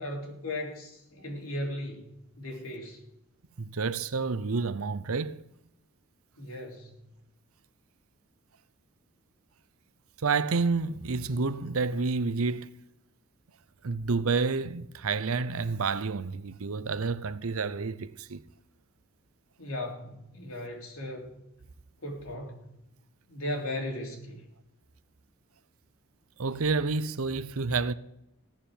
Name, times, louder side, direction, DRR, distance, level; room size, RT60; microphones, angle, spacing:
voice 1, 0.0-2.1 2.4-3.0 6.4-6.9 19.6-21.3 22.0-22.7 23.3-24.4, left 1 dB, 85° left, 3.5 m, -37 dB
voice 2, 3.6-5.4 10.2-12.7 13.8-18.4 26.4-27.9, right 4 dB, 85° right, 0.7 m, -29 dB
16.0 x 7.1 x 9.5 m
head